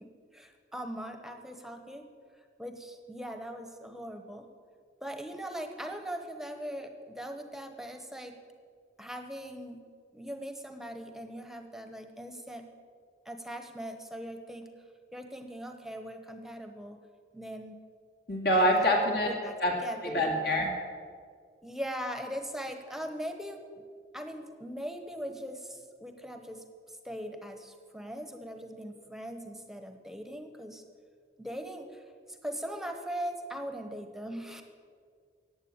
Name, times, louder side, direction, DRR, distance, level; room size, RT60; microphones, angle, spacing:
voice 1, 0.3-2.1 2.6-4.5 5.0-8.4 9.0-9.8 10.1-12.7 13.2-14.7 15.1-17.0 17.3-17.7 18.5-18.9 19.3-19.6 19.8-20.3 21.6-23.6 24.1-26.6 27.0-30.8 31.4-34.6, equal, ahead, 6 dB, 1.0 m, -40 dB
voice 2, 18.3-19.3 19.6-19.7 20.0-20.7, equal, 60° left, 1 dB, 2.4 m, -25 dB
15.0 x 9.4 x 8.8 m, 2.1 s
head